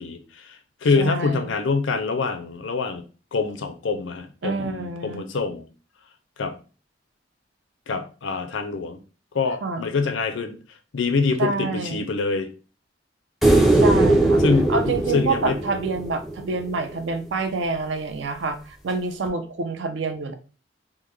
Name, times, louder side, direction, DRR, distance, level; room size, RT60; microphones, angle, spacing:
voice 1, 0.0-3.0 3.3-5.6 6.4-6.5 7.9-9.0 9.3-10.6 10.9-12.5 14.4-15.6, left 4 dB, 85° left, 8 dB, 0.5 m, -25 dB
voice 2, 1.0-1.5 4.4-5.3 9.6-9.9 11.4-12.1 13.8-14.4 14.7-20.3, right 3 dB, 70° right, 8 dB, 0.4 m, -27 dB
sound 1, 13.4-16.7 19.3-19.4, right 2 dB, ahead, 0.4 m, -19 dB
3.6 x 2.1 x 3.1 m, 0.35 s
head